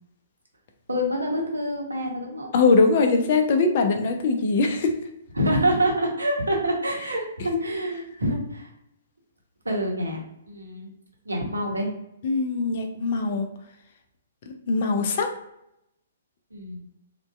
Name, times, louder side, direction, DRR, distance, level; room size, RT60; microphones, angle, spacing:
voice 1, 0.9-2.6 5.4-8.7 9.6-10.2 10.5-10.9 11.3-11.9 16.5-16.8, equal, 80° right, 0 dB, 0.7 m, -26 dB
voice 2, 2.5-5.0 7.5-7.6 12.2-13.5 14.5-15.3, left 4 dB, 45° left, 4 dB, 0.4 m, -22 dB
2.6 x 2.2 x 2.2 m, 0.82 s
figure-of-eight pair, 120°, 0 cm